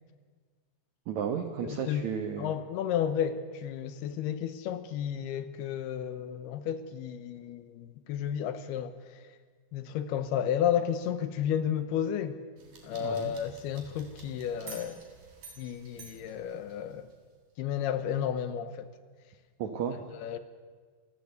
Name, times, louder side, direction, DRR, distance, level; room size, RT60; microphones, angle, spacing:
voice 1, 1.1-2.5 13.0-13.3 19.6-20.0, right 7 dB, 75° right, 7 dB, 1.7 m, -33 dB
voice 2, 1.6-2.1 2.4-9.0 9.7-12.4 12.8-15.0 15.6-17.1 17.6-18.9 20.2-20.4, left 9 dB, 75° left, 12 dB, 2.8 m, -32 dB
sound 1, 12.6-17.1, right 3 dB, 55° right, 5.2 m, -50 dB
29.0 x 14.5 x 8.1 m, 1.5 s
omnidirectional pair, 5.0 m